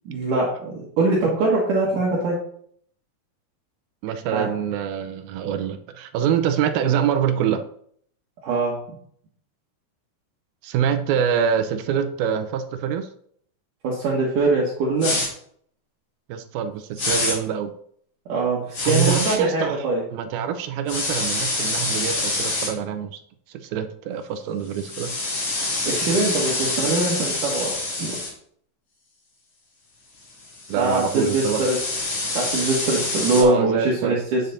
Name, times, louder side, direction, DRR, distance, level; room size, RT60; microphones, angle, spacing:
voice 1, 0.1-2.4 4.3-4.5 8.4-8.8 13.8-15.2 18.3-20.0 25.8-28.1 30.8-31.8 32.3-34.4, right 2 dB, 65° right, -4 dB, 2.8 m, -22 dB
voice 2, 4.0-7.6 10.6-13.1 16.3-17.7 18.9-19.9 20.1-23.2 23.5-25.1 30.7-31.6 33.4-34.2, right 8 dB, 90° right, 9 dB, 2.6 m, -25 dB
sound 1, 15.0-15.3 17.0-17.3 18.7-19.4 20.9-22.7 24.7-28.3 30.4-33.4, left 2 dB, 55° left, 4.4 m, -26 dB
9.1 x 6.7 x 4.1 m, 0.63 s
omnidirectional pair, 4.3 m